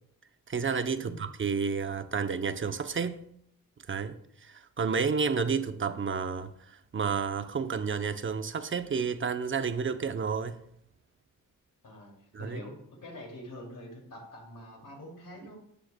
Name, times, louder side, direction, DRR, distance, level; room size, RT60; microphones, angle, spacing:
voice 1, 0.5-3.2 3.9-10.6 12.3-12.6, right 5 dB, 35° right, 0.7 m, -31 dB
voice 2, 1.0-1.3 11.8-15.5, left 1 dB, 65° left, 2.5 m, -45 dB
12.0 x 7.6 x 2.2 m
cardioid pair, 90°, 34 cm